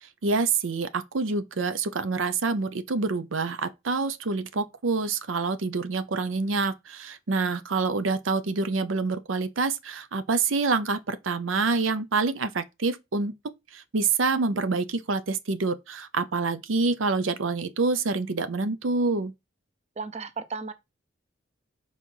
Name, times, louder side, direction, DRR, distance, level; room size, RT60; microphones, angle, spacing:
voice 1, 0.0-13.3 13.7-19.3, right 4 dB, 85° right, 0.7 m, -27 dB
voice 2, 20.0-20.7, right 5 dB, 35° right, 0.7 m, -34 dB
5.6 x 4.0 x 4.6 m
head